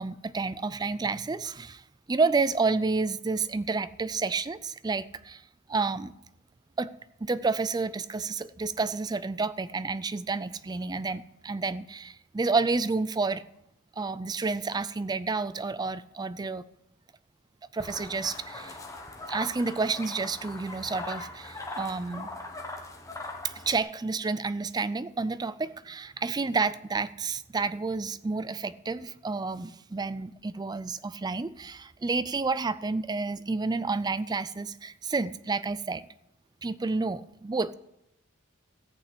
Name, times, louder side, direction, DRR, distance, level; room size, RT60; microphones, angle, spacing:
voice 1, 0.0-6.1 6.8-6.9 7.2-13.4 14.0-16.7 17.7-18.8 19.3-22.3 23.4-36.1 36.6-37.7, right 4 dB, 20° right, 16 dB, 0.4 m, -30 dB
sound 1, 17.8-23.8, left 2 dB, 15° left, 1.4 m, -40 dB
14.0 x 5.8 x 8.3 m, 0.82 s
head